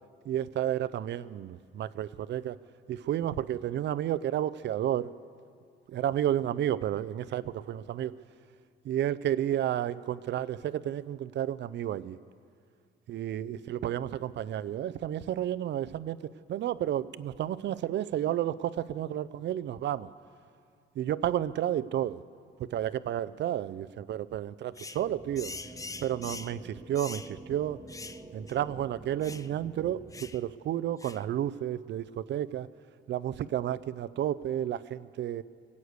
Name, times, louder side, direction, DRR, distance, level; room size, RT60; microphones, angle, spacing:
voice 1, 0.3-2.6 2.9-5.1 5.9-8.1 8.8-12.2 13.1-16.2 16.5-20.1 21.0-22.2 22.6-25.5 26.0-27.8 28.3-30.0 30.3-32.7 33.1-35.4, right 11 dB, 65° right, 17 dB, 0.5 m, -31 dB
sound 1, 24.8-25.0 25.4-26.6 27.0-27.3 27.9-28.2 28.5-28.6 29.2-29.5 30.1-30.4 31.0-31.3, left 3 dB, 15° left, 0.5 m, -43 dB
sound 2, 25.0-30.3, right 2 dB, 15° right, 1.2 m, -48 dB
21.0 x 8.4 x 8.0 m, 2.2 s
cardioid pair, 90°, 20 cm